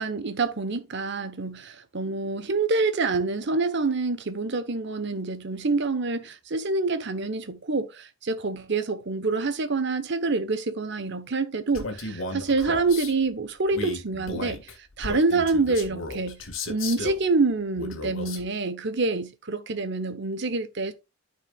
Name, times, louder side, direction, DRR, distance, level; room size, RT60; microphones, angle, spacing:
voice 1, 0.0-14.6 15.0-16.4 16.7-20.9, right 3 dB, 60° right, 1.1 m, -26 dB
Male speech man speaking, 11.7-13.1 13.7-17.2 17.8-18.5, left 3 dB, 85° left, 1.8 m, -35 dB
13.0 x 4.9 x 2.4 m
head